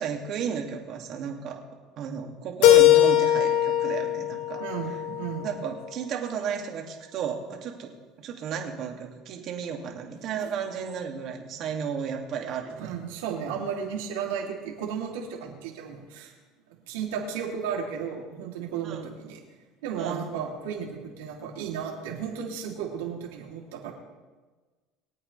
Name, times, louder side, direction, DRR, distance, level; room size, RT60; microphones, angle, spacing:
voice 1, 0.0-1.6 2.0-4.6 5.4-12.9 18.8-19.1 20.0-20.3, right 7 dB, 55° right, 2 dB, 2.4 m, -33 dB
Keyboard (musical), 2.6-5.5, left 13 dB, 75° left, 2.0 m, -20 dB
voice 2, 4.6-5.5 10.4-10.5 12.8-16.3 16.9-19.4 19.8-23.9, right 7 dB, 85° right, -1 dB, 3.0 m, -34 dB
22.5 x 8.6 x 3.4 m, 1.3 s
supercardioid pair, 105°, 0 cm